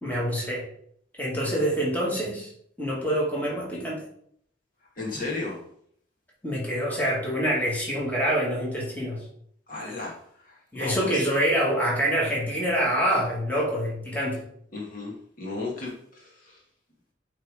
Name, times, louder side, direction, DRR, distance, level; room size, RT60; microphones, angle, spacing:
voice 1, 0.0-0.6 1.2-2.5 2.8-4.0 6.4-9.2 10.7-14.4, equal, 10° left, -4 dB, 2.0 m, -26 dB
voice 2, 5.0-5.6 9.7-11.2 14.7-16.6, left 3 dB, 50° left, -2 dB, 1.7 m, -35 dB
8.6 x 3.5 x 5.0 m, 0.65 s
head